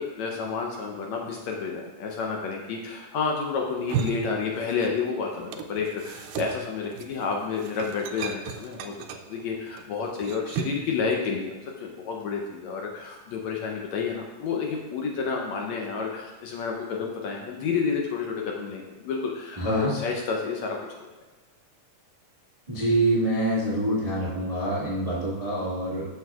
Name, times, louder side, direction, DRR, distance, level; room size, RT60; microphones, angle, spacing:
voice 1, 0.0-20.8, left 5 dB, 75° left, 0 dB, 1.8 m, -30 dB
sound 1, 3.7-5.1 5.3-10.9, right 8 dB, 85° right, 2.1 m, -35 dB
voice 2, 19.6-19.9 22.7-26.1, right 1 dB, 40° right, -7 dB, 0.5 m, -26 dB
14.0 x 6.2 x 2.4 m, 1.2 s
omnidirectional pair, 3.8 m